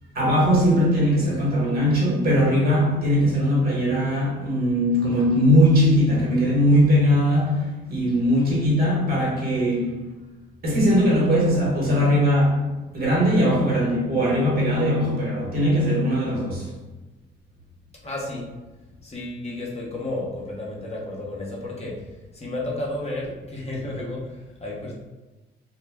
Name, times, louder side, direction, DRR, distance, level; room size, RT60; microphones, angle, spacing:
voice 1, 0.1-10.2 10.6-12.6 12.9-16.7, equal, 50° right, 1.1 m, -20 dB
voice 2, 18.0-18.5 19.0-24.9, left 2 dB, 30° left, 0.7 m, -32 dB
2.1 x 2.1 x 3.4 m
cardioid pair, 90°, 20 cm